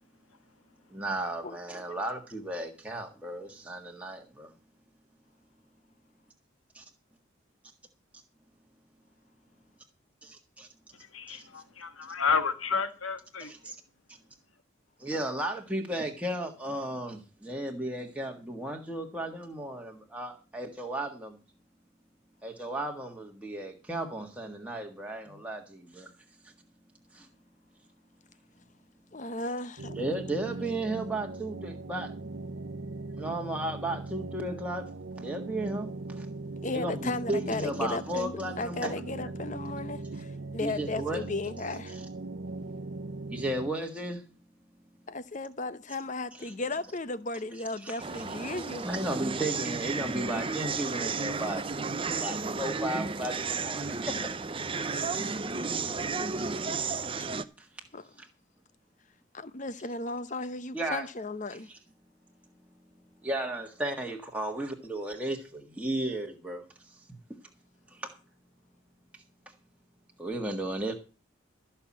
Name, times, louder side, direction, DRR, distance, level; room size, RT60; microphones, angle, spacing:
voice 1, 0.9-4.5 6.7-6.8 10.2-10.7 11.3-11.4 13.4-13.8 14.1-14.2 15.0-21.4 22.4-26.1 26.4-26.5 27.1-27.3 29.9-32.1 33.1-36.3 36.7-38.9 40.6-41.2 41.9-42.1 43.3-44.2 46.3-46.5 47.5-48.2 48.6-54.1 57.6-57.7 58.2-58.3 60.7-61.1 61.5-61.8 63.2-67.0 67.3-67.4 67.9-68.1 69.1-69.2 70.2-70.9, right 1 dB, 5° right, 1.6 m, -35 dB
voice 2, 11.1-13.7, left 5 dB, 85° left, 1.6 m, -31 dB
voice 3, 29.1-30.0 36.6-42.0 45.1-48.9 55.9-56.5 57.9-58.0 59.3-61.7, left 2 dB, 35° left, 0.8 m, -35 dB
sound 1, 29.8-43.7, right 2 dB, 70° right, 0.8 m, -40 dB
sound 2, 48.0-57.4, right 4 dB, 25° right, 0.6 m, -33 dB
13.5 x 5.8 x 8.6 m
head